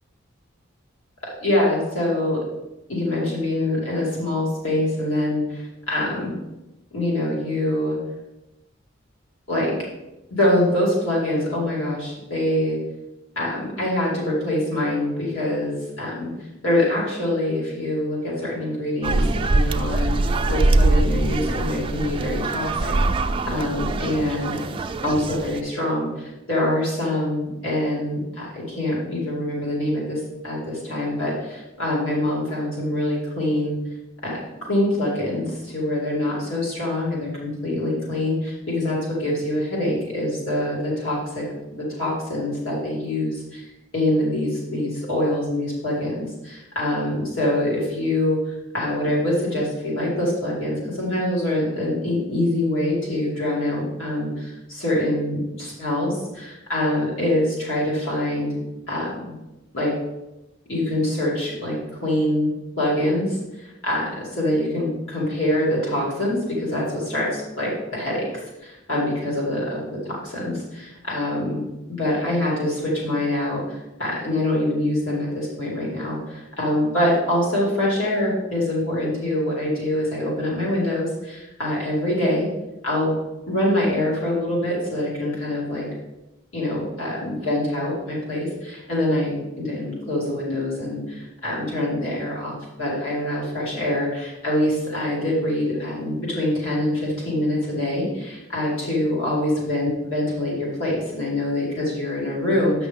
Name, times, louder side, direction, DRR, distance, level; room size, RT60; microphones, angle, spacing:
voice 1, 1.4-2.4 2.9-6.3 6.9-8.0 9.5-9.7 10.3-12.8 13.4-16.3 16.6-22.9 23.5-24.6 25.0-33.7 34.2-34.4 34.7-41.4 41.8-43.6 43.9-58.6 58.9-59.4 59.7-59.9 60.7-62.5 62.8-82.5 82.8-83.2 83.5-85.9 86.5-102.9, left 1 dB, 90° left, -6 dB, 2.8 m, -24 dB
sound 1, 19.0-25.6, right 2 dB, 25° right, 0.3 m, -22 dB
8.8 x 5.9 x 3.6 m, 0.96 s
head